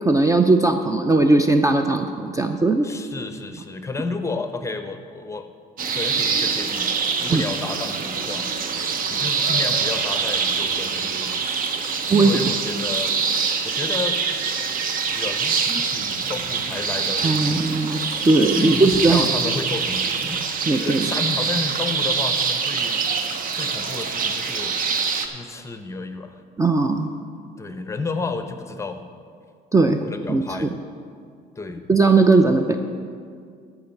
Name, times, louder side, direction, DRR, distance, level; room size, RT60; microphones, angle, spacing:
voice 1, 0.0-2.9 7.3-7.4 12.1-12.4 17.2-18.0 18.2-19.3 20.7-21.1 26.6-27.1 29.7-30.0 30.3-30.7 31.9-32.8, right 3 dB, 20° right, 6 dB, 0.5 m, -18 dB
voice 2, 2.8-5.5 5.9-6.9 7.2-8.5 9.1-11.3 12.1-13.1 13.6-14.2 15.1-17.7 18.5-20.4 20.8-23.1 23.6-24.7 25.3-26.4 27.6-29.0 30.0-30.7 31.6-31.9, left 3 dB, 15° left, 8 dB, 0.8 m, -31 dB
sound 1, 5.8-25.3, right 5 dB, 55° right, 0.9 m, -24 dB
13.0 x 4.8 x 7.2 m, 2.2 s
cardioid pair, 110°, 17 cm